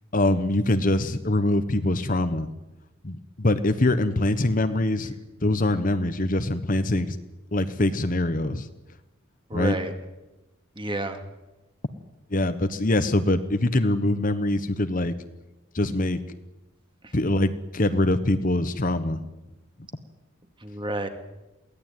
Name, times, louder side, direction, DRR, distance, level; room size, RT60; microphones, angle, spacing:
voice 1, 0.1-2.5 3.0-5.1 5.4-7.2 7.5-8.7 9.5-9.7 12.3-15.1 15.7-16.2 17.1-19.2, left 1 dB, 40° left, 11 dB, 1.1 m, -23 dB
voice 2, 9.5-9.9 10.8-11.2 17.0-17.1 20.6-21.1, right 1 dB, 25° right, 6 dB, 2.3 m, -30 dB
23.5 x 17.0 x 9.2 m, 1.0 s
head